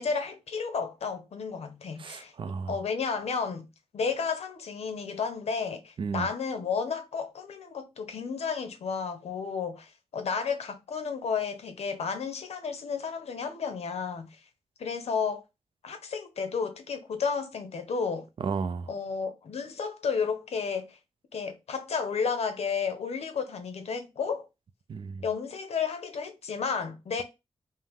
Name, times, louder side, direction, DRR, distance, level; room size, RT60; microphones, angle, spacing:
voice 1, 0.0-2.3 2.7-3.7 3.9-14.4 14.8-15.4 15.8-18.3 18.9-21.0 21.3-24.5 25.2-27.2, left 5 dB, 75° left, 0.7 m, -32 dB
voice 2, 2.0-2.7 6.0-6.3 18.4-18.9 24.9-25.2, right 5 dB, 50° right, 0.4 m, -33 dB
5.5 x 2.1 x 3.4 m
wide cardioid pair, 150°, 11 cm